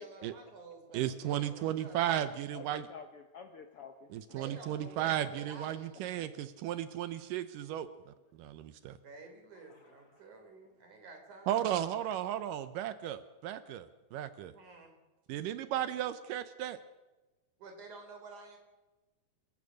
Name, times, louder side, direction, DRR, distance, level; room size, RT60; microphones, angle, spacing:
voice 1, 0.0-2.2 4.3-6.1 9.0-11.7 14.5-15.0 17.6-18.6, right 3 dB, 60° right, 4 dB, 5.1 m, -51 dB
voice 2, 0.9-2.9 4.1-7.9 8.4-9.0 11.5-14.5 15.3-16.8, right 11 dB, 80° right, 12 dB, 2.4 m, -35 dB
voice 3, 2.5-4.1 9.7-10.0, left 6 dB, 60° left, 6 dB, 1.5 m, -49 dB
27.5 x 15.5 x 6.4 m, 1.2 s
omnidirectional pair, 3.9 m